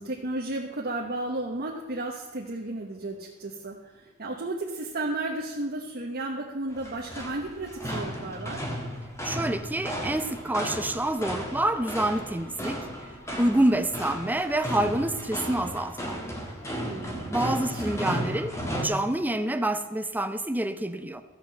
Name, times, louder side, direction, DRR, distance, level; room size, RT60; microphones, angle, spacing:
voice 1, 0.0-8.7 16.8-17.8, right 2 dB, 45° right, -1 dB, 1.1 m, -34 dB
sound 1, 6.7-18.9, equal, 15° left, 1.6 m, -34 dB
voice 2, 9.2-12.8 13.4-16.2 17.3-18.5 18.8-21.2, right 1 dB, 10° right, 10 dB, 0.6 m, -27 dB
14.0 x 5.6 x 7.6 m, 1.2 s
head